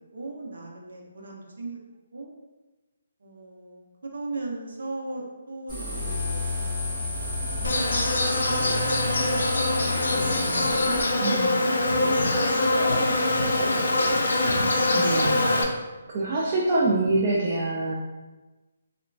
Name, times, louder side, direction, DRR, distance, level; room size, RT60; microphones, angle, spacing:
voice 1, 0.1-1.8 2.1-2.3 3.2-7.0 7.3-8.0 10.4-13.5, right 2 dB, 80° right, -1 dB, 0.6 m, -39 dB
sound 1, 5.7-11.0, left 2 dB, ahead, 1.4 m, -30 dB
Insect, 7.6-15.6, left 2 dB, 85° left, 0.4 m, -23 dB
voice 2, 11.2-11.5 14.9-15.5 16.1-17.9, right 2 dB, 30° right, -3 dB, 0.3 m, -25 dB
2.9 x 2.1 x 2.5 m, 1.2 s
hypercardioid pair, 170°, 0 cm